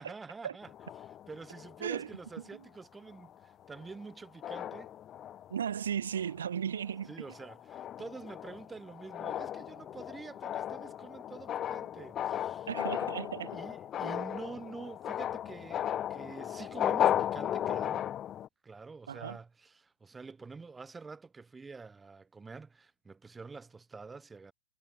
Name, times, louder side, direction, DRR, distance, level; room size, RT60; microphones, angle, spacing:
voice 1, 0.0-4.9 7.1-12.7 13.5-18.1 18.6-24.5, right 4 dB, 10° right, 3.4 m, -47 dB
sound 1, 0.6-2.5 3.1-3.3 3.7-4.1 4.4-5.7 6.2-6.5 6.9-18.5, left 11 dB, 25° left, 0.6 m, -35 dB
voice 2, 5.5-7.1 12.7-13.6 14.0-14.2 19.1-19.4, right 8 dB, 80° right, 2.4 m, -35 dB
hypercardioid pair, 120°, 0 cm